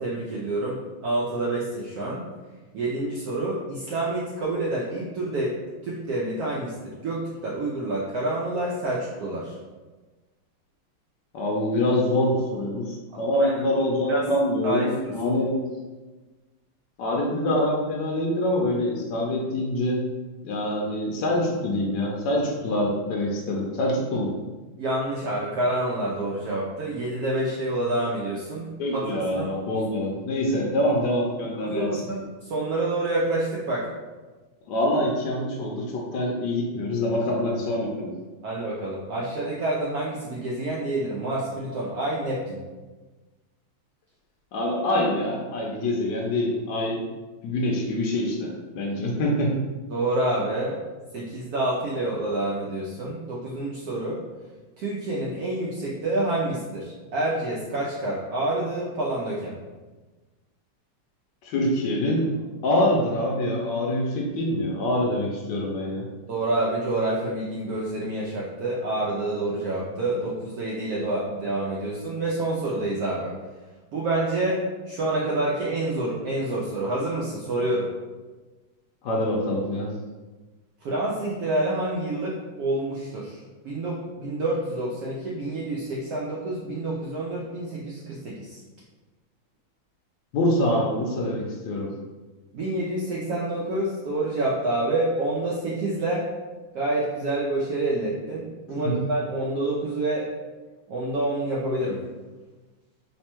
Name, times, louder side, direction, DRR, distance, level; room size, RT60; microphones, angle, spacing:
voice 1, 0.0-2.2 2.7-5.5 5.8-9.6 13.3-13.5 14.1-14.2 14.6-15.1 24.8-28.7 28.9-29.5 31.6-33.9 38.4-42.6 49.9-50.8 51.1-54.2 54.8-59.5 66.3-73.3 73.9-77.9 80.8-83.4 83.6-88.6 92.5-96.3 96.7-100.3 100.9-102.0, right 2 dB, 90° right, -5 dB, 0.8 m, -28 dB
voice 2, 11.3-15.5 17.0-20.0 20.4-24.3 28.8-32.0 34.7-38.1 44.5-47.0 47.4-49.5 61.4-62.3 62.6-66.1 79.0-79.9 90.3-91.9 98.7-99.0, left 1 dB, 75° left, -2 dB, 1.1 m, -25 dB
3.3 x 2.2 x 4.3 m, 1.2 s
omnidirectional pair, 2.3 m